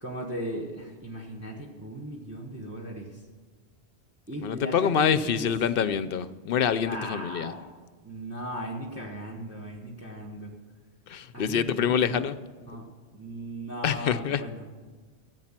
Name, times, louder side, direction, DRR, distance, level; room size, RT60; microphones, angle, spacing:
voice 1, 0.0-3.2 4.3-4.8 5.2-5.5 6.8-7.7 8.0-10.5 11.3-12.2 12.6-12.8 13.1-14.7, right 1 dB, 15° right, -2 dB, 1.4 m, -37 dB
voice 2, 4.4-7.6 11.1-12.4 13.8-14.4, left 7 dB, 60° left, 14 dB, 0.8 m, -26 dB
15.0 x 8.2 x 7.4 m, 1.5 s
omnidirectional pair, 1.1 m